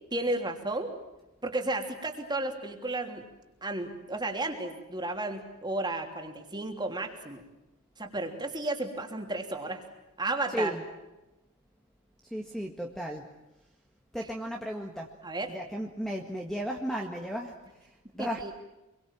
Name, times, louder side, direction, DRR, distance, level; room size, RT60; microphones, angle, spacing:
voice 1, 0.1-0.9 1.4-3.2 3.6-7.4 8.0-9.8 10.2-10.7 15.2-15.5 18.2-18.5, right 2 dB, 20° right, 4 dB, 3.2 m, -33 dB
voice 2, 10.5-10.8 12.3-13.2 14.1-15.1 15.5-17.5 18.1-18.5, equal, ahead, 1 dB, 1.8 m, -34 dB
27.0 x 23.0 x 7.6 m, 1.0 s
head